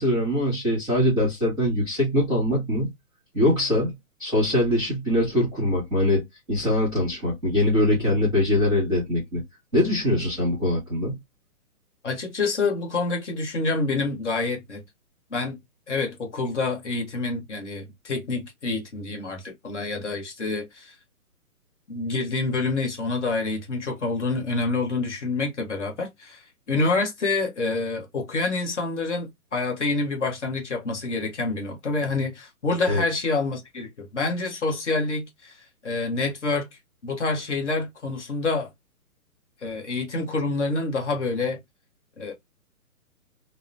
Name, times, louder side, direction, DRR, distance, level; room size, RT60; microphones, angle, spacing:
voice 1, 0.0-2.9 3.3-3.9 4.2-6.2 6.5-9.4 9.7-11.2 32.9-33.0, left 1 dB, ahead, 0.8 m, -22 dB
voice 2, 12.0-14.8 15.3-15.6 15.9-20.9 21.9-26.4 26.7-35.6 35.8-36.7 37.0-38.7 39.6-41.6 42.2-42.3, left 3 dB, 50° left, 0.9 m, -27 dB
2.7 x 2.0 x 2.4 m
hypercardioid pair, 175°, 46 cm